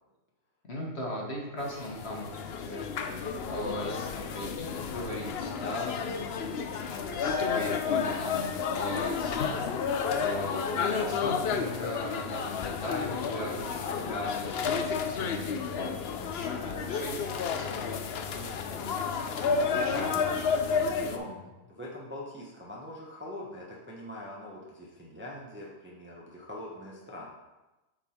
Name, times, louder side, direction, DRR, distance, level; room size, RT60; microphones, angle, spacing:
voice 1, 0.7-3.2 3.5-9.9 10.2-14.6 15.0-17.8 18.3-19.0 19.8-21.5, equal, 45° left, -2 dB, 1.4 m, -39 dB
sound 1, 1.6-21.2, left 6 dB, 65° left, 0.6 m, -31 dB
voice 2, 13.8-14.2 18.3-18.6 19.3-20.0 21.0-21.3 21.7-27.2, left 1 dB, 10° right, -4 dB, 0.8 m, -43 dB
7.2 x 3.9 x 4.4 m, 1.0 s
omnidirectional pair, 1.6 m